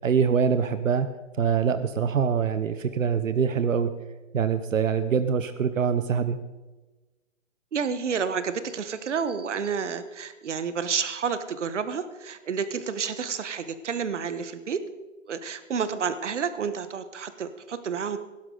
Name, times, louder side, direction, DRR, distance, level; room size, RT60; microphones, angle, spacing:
voice 1, 0.0-1.1 1.4-3.9 4.3-6.4, right 6 dB, 90° right, 11 dB, 1.0 m, -24 dB
voice 2, 7.7-14.8 15.3-18.2, right 6 dB, 65° right, 12 dB, 1.2 m, -30 dB
17.5 x 12.0 x 3.9 m, 1.2 s
hypercardioid pair, 170°, 38 cm